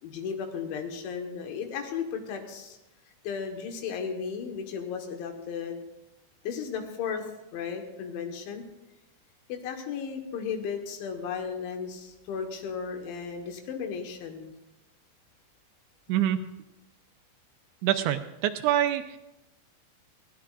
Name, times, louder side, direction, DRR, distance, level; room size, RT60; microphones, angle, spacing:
voice 1, 0.0-2.8 3.2-5.8 6.4-7.3 7.5-8.6 9.5-14.5, left 6 dB, 75° left, 4 dB, 3.6 m, -35 dB
voice 2, 17.8-19.2, right 12 dB, 80° right, 8 dB, 2.9 m, -25 dB
21.0 x 16.0 x 2.5 m, 0.97 s
omnidirectional pair, 5.5 m